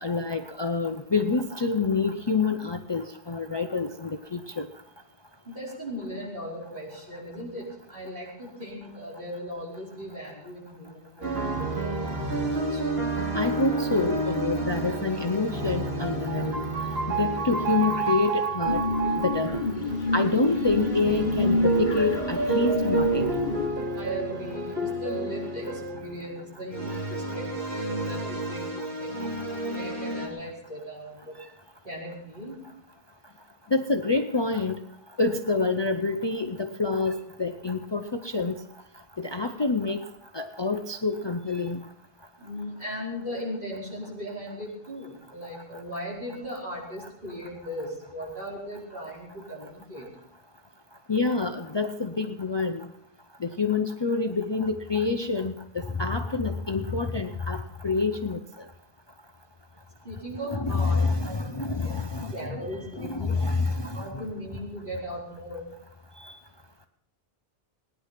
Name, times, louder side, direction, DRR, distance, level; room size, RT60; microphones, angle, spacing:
voice 1, 0.0-4.7 13.3-16.6 17.1-18.8 19.2-19.6 20.1-23.3 26.9-27.0 33.7-34.8 35.2-38.5 39.2-40.0 40.3-41.8 51.1-52.9 53.4-58.4 60.5-62.6 63.0-64.2 66.2-66.3, left 4 dB, 30° left, 7 dB, 0.6 m, -27 dB
voice 2, 5.4-12.9 23.9-29.4 29.7-31.3 31.8-32.6 42.4-50.1 60.0-61.9 62.2-63.3 63.8-65.6, equal, 55° right, -4 dB, 5.1 m, -38 dB
sound 1, 11.2-30.3, right 3 dB, 70° right, 2.9 m, -30 dB
sound 2, 18.6-23.7, left 2 dB, 50° left, 1.3 m, -27 dB
18.5 x 10.0 x 5.9 m, 0.75 s
omnidirectional pair, 1.1 m